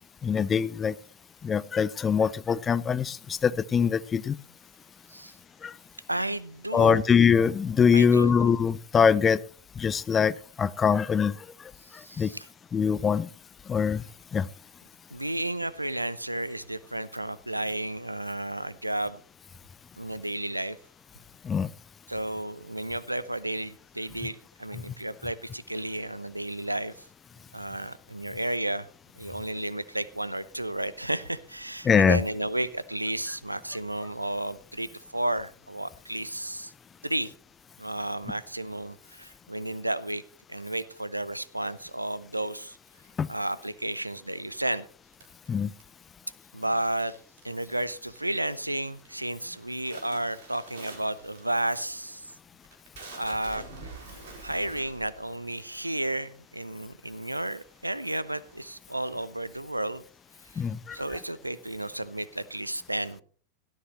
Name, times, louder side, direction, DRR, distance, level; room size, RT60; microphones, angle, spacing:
voice 1, 0.2-0.9 1.4-4.4 5.6-5.7 6.7-9.4 9.8-11.4 12.2-12.3 12.7-13.3 13.7-14.0 14.3-14.5 21.4-21.7 31.8-32.2 43.2-43.3 45.5-45.7 60.6-61.0, left 6 dB, 20° left, 19 dB, 0.6 m, -23 dB
voice 2, 6.1-7.0 7.9-8.5 11.8-12.5 15.1-19.2 20.0-20.8 22.1-26.9 27.5-28.9 29.2-36.7 37.0-37.3 37.8-40.2 40.5-42.8 43.3-44.8 46.5-47.1 47.4-52.3 53.2-53.6 54.4-60.0 60.5-60.6 60.9-63.2, right 1 dB, 85° right, 17 dB, 0.7 m, -32 dB
sound 1, 45.1-46.2 47.0-47.6 47.8-48.3 48.7-49.1 49.4-56.5 57.1-57.2 57.5-59.1, right 3 dB, 55° right, 4.3 m, -47 dB
17.5 x 13.0 x 3.1 m, 0.43 s
figure-of-eight pair, 90°, 0 cm